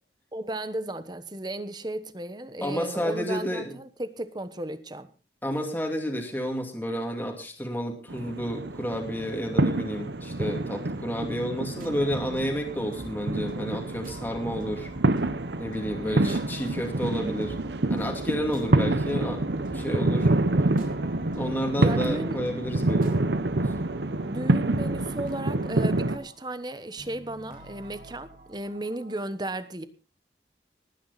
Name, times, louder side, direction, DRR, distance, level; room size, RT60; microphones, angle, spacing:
voice 1, 0.3-5.1 16.0-16.4 21.8-22.4 24.3-29.9, right 1 dB, 25° right, 1.1 m, -34 dB
voice 2, 2.6-3.7 5.4-14.9 15.6-17.6 17.9-19.4 19.7-20.3 21.4-23.2 23.6-23.7, equal, 10° left, 2.4 m, -31 dB
sound 1, 8.1-26.2, right 2 dB, 75° right, 0.9 m, -27 dB
sound 2, 11.7-29.2, right 1 dB, 50° right, 3.4 m, -45 dB
19.5 x 9.6 x 4.1 m
head